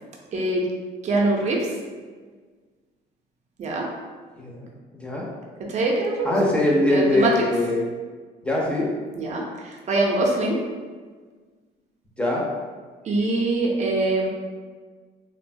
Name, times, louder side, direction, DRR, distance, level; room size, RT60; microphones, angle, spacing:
voice 1, 0.3-0.6 1.0-1.7 3.6-3.8 5.7-6.3 6.9-7.5 9.1-10.6 13.0-14.3, right 2 dB, 45° right, -1 dB, 0.6 m, -23 dB
voice 2, 4.4-4.7 4.9-5.2 6.2-7.8 8.4-8.9 12.2-12.4, left 1 dB, 5° left, -4 dB, 0.6 m, -22 dB
3.0 x 2.2 x 2.6 m, 1.5 s
cardioid pair, 110°, 17 cm